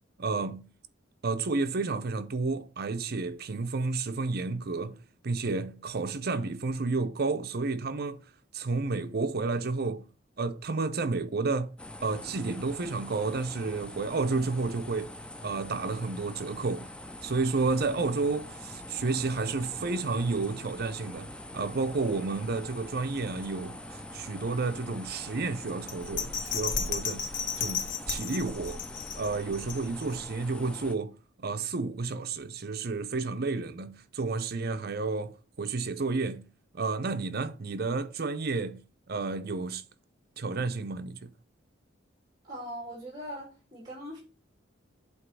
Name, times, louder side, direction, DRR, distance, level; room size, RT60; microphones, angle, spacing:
voice 1, 0.2-0.7 1.2-5.0 5.2-8.2 8.5-10.1 10.4-15.1 15.4-16.9 17.2-27.3 27.6-28.8 29.2-36.5 36.7-39.8 40.4-41.3, right 3 dB, 55° right, 0.6 m, -31 dB
sound 1, 11.8-30.9, left 1 dB, 5° left, 0.4 m, -44 dB
Bell, 25.9-30.2 30.6-30.7, left 6 dB, 70° left, 0.8 m, -34 dB
voice 2, 42.4-44.2, equal, 20° right, 2.3 m, -40 dB
7.9 x 3.0 x 6.1 m
head